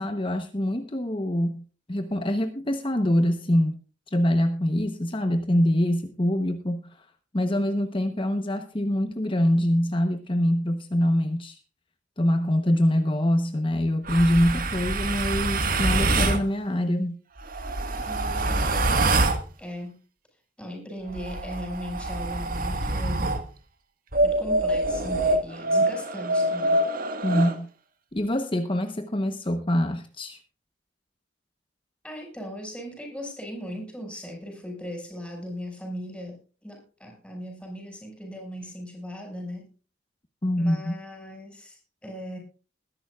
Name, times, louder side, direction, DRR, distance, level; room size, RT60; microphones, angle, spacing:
voice 1, 0.0-1.6 1.9-3.8 4.1-7.1 7.3-11.6 12.2-17.2 27.2-27.7 28.1-30.4 40.4-41.0, left 1 dB, 25° left, 7 dB, 0.9 m, -24 dB
sound 1, 14.1-16.4 17.4-19.4 21.1-23.4 24.1-27.6, right 2 dB, 50° right, 1.6 m, -25 dB
voice 2, 18.1-19.0 19.6-20.0 20.6-23.4 24.2-26.8 32.0-39.7 40.6-42.4, equal, 5° left, 1 dB, 5.5 m, -38 dB
21.0 x 11.0 x 2.4 m, 0.36 s
head